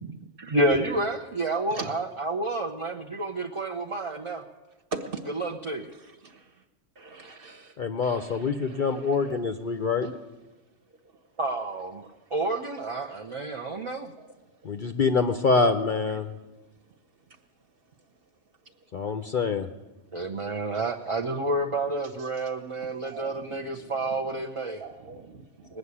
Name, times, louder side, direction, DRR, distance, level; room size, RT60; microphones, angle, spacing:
voice 1, 0.0-4.4 5.3-5.9 11.4-14.1 20.1-24.8 25.7-25.8, right 2 dB, 30° right, 2 dB, 0.7 m, -29 dB
voice 2, 4.9-5.5 6.2-6.5 7.0-7.7 8.0-9.4 9.8-10.1 22.5-22.6 23.0-23.9 24.8-25.8, right 4 dB, 45° right, 5 dB, 1.4 m, -41 dB
voice 3, 7.8-10.1 14.6-16.3 18.9-19.7, left 4 dB, 50° left, 8 dB, 0.7 m, -25 dB
19.5 x 6.6 x 9.7 m, 1.1 s
omnidirectional pair, 1.3 m